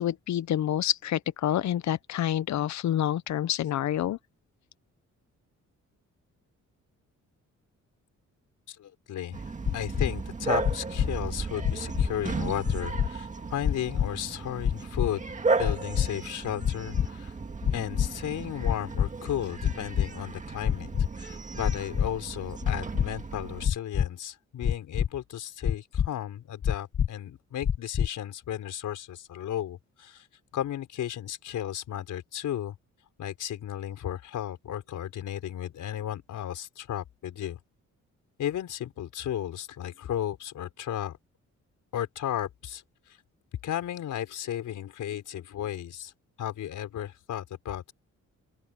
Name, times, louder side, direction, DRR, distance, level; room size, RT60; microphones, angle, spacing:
voice 1, 0.0-4.2, left 11 dB, 70° left, 0.7 m, -28 dB
voice 2, 8.7-15.2 15.6-17.4 17.7-20.9 21.2-30.3 30.5-32.7 33.2-37.6 38.4-41.2 41.9-43.2 43.6-46.1 46.4-47.9, left 11 dB, 85° left, 4.5 m, -34 dB
Bark, 9.3-23.7, right 4 dB, 25° right, 2.0 m, -35 dB
sound 1, 9.7-10.1 10.6-11.1 11.6-12.1 12.6-13.1 13.6-14.1 14.6-15.1 15.6-16.1 16.6-17.1 17.6-18.1 18.6-19.1 19.6-20.1 20.6-21.1 21.6-22.1 22.6-23.1 23.6-24.1 24.6-25.1 25.6-26.1 26.6-27.1 27.6-28.1, left 8 dB, 40° left, 0.7 m, -25 dB
open air
cardioid pair, 135°, 30 cm